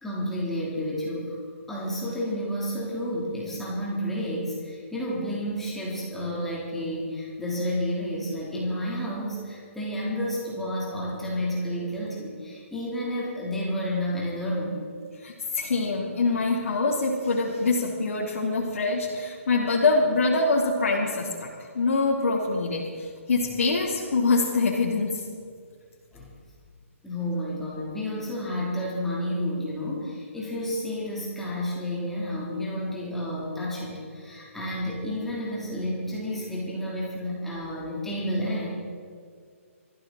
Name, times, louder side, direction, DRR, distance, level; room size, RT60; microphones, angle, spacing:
voice 1, 0.0-1.4 1.7-14.8 26.1-26.3 27.0-38.7, equal, 5° left, -7 dB, 3.6 m, -30 dB
voice 2, 15.2-25.2, left 3 dB, 70° left, -6 dB, 3.1 m, -25 dB
21.0 x 15.0 x 4.2 m, 2.1 s
hypercardioid pair, 165°, 8 cm